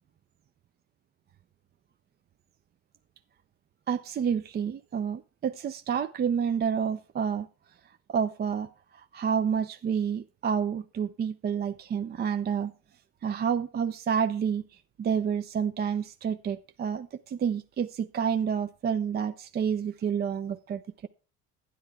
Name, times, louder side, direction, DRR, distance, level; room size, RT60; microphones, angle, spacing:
voice 1, 3.9-7.5 8.1-12.7 13.2-21.1, right 7 dB, 30° right, 0.4 m, -29 dB
10.5 x 10.0 x 3.5 m
supercardioid pair, 105°, 36 cm